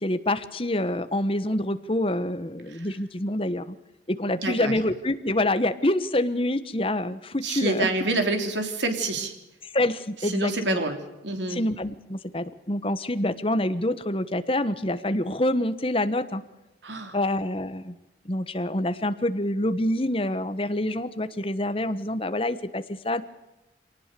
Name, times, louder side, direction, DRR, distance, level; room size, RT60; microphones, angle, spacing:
voice 1, 0.0-3.8 4.1-7.9 9.7-10.8 11.5-16.4 17.1-17.9 18.2-23.2, left 1 dB, 30° left, 11 dB, 1.2 m, -26 dB
voice 2, 4.4-4.7 7.4-9.3 10.2-11.6 16.8-17.2, right 2 dB, 80° right, 6 dB, 3.5 m, -27 dB
24.5 x 19.0 x 6.9 m, 0.97 s
head